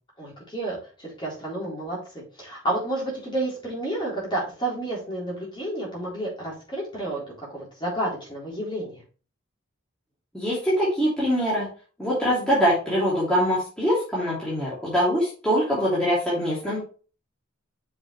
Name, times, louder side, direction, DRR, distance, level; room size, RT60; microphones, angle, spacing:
voice 1, 0.2-2.0 2.4-9.0, right 1 dB, 20° left, -5 dB, 3.9 m, -30 dB
voice 2, 10.3-11.7 12.0-16.8, equal, 5° left, -9 dB, 2.9 m, -23 dB
6.6 x 5.9 x 3.2 m, 0.37 s
head